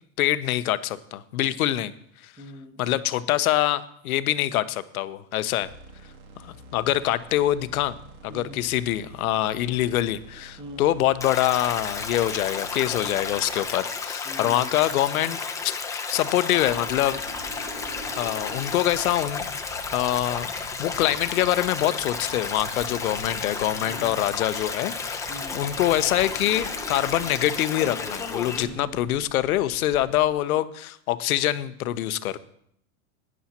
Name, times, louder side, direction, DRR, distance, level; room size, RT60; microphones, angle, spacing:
voice 1, 0.2-1.9 2.2-2.3 2.8-5.7 6.4-7.9 8.2-15.4 15.6-17.6 18.2-19.5 19.9-20.5 20.8-25.2 25.5-32.4, left 13 dB, 75° left, 13 dB, 0.9 m, -25 dB
voice 2, 2.4-2.9 8.3-8.6 10.6-10.9 14.2-14.7 23.8-24.2 25.3-25.6 28.5-29.0, equal, 10° right, 4 dB, 1.3 m, -41 dB
sound 1, 5.6-13.6, right 1 dB, 75° right, 2.8 m, -47 dB
Stream, 11.2-28.6, left 5 dB, 5° left, 0.7 m, -32 dB
sound 2, 16.5-30.3, right 3 dB, 30° right, 2.0 m, -44 dB
17.0 x 10.5 x 2.9 m, 0.69 s
supercardioid pair, 145°, 43 cm